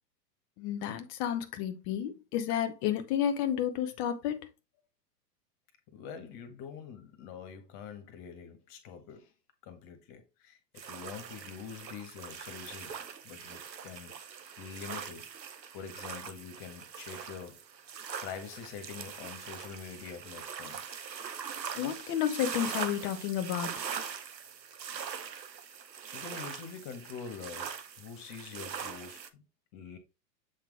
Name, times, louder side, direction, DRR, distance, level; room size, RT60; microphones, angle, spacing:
voice 1, 0.6-4.5 21.8-23.8, left 10 dB, 15° left, 0.4 m, -31 dB
voice 2, 5.9-9.3 9.6-13.0 13.2-14.1 14.6-15.3 15.7-17.6 18.2-21.0 26.1-29.4 29.7-30.0, left 7 dB, 40° left, 1.6 m, -45 dB
sound 1, 10.8-29.3, right 7 dB, 90° right, 0.9 m, -42 dB
7.5 x 3.6 x 3.4 m
hypercardioid pair, 110°, 49 cm